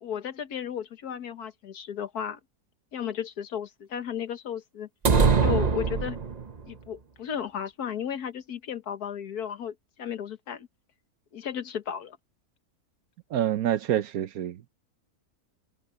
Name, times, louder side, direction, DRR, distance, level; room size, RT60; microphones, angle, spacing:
voice 1, 0.0-2.4 2.9-4.9 5.4-6.2 6.7-10.7 11.3-12.2, left 8 dB, 80° left, 1.7 m, -34 dB
sound 1, 5.0-6.6, right 5 dB, 35° right, 0.8 m, -22 dB
voice 2, 13.3-14.7, right 11 dB, 70° right, 1.2 m, -27 dB
omnidirectional pair, 1.6 m